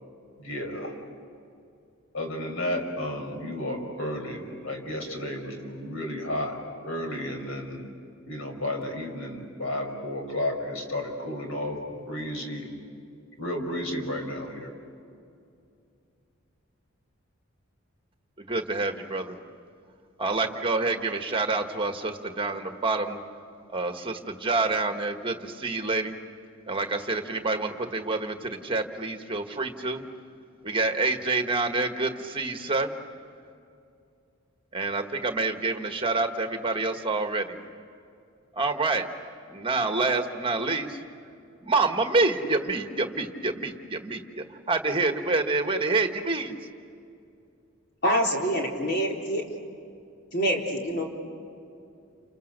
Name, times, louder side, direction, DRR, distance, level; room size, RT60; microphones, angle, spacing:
voice 1, 0.4-0.9 2.1-6.5 6.8-7.9 8.3-12.7 13.4-14.7, left 1 dB, 75° left, 3 dB, 5.0 m, -32 dB
voice 2, 18.4-19.4 20.2-23.2 23.7-26.2 26.7-30.1 30.6-32.9 34.7-37.6 38.5-39.1 39.5-41.0 41.6-46.6, right 3 dB, 25° right, 6 dB, 1.5 m, -27 dB
voice 3, 48.0-49.4 50.3-51.0, equal, 50° left, -1 dB, 4.1 m, -25 dB
30.0 x 28.5 x 6.7 m, 2.5 s
head